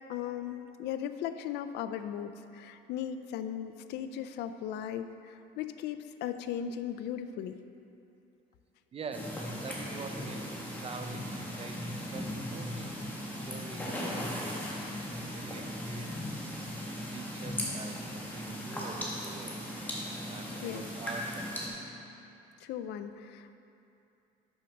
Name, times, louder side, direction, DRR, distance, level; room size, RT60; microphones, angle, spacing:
voice 1, 0.1-7.6 20.2-20.3 20.6-20.9 22.6-23.6, left 9 dB, 80° left, 10 dB, 0.4 m, -37 dB
voice 2, 8.9-12.9 13.4-14.7 15.2-16.7 17.1-19.6 20.2-21.8, right 5 dB, 35° right, 6 dB, 0.6 m, -46 dB
sound 1, 9.1-21.7, equal, 10° left, 1.6 m, -38 dB
6.3 x 6.3 x 5.8 m, 2.8 s
cardioid pair, 110°, 17 cm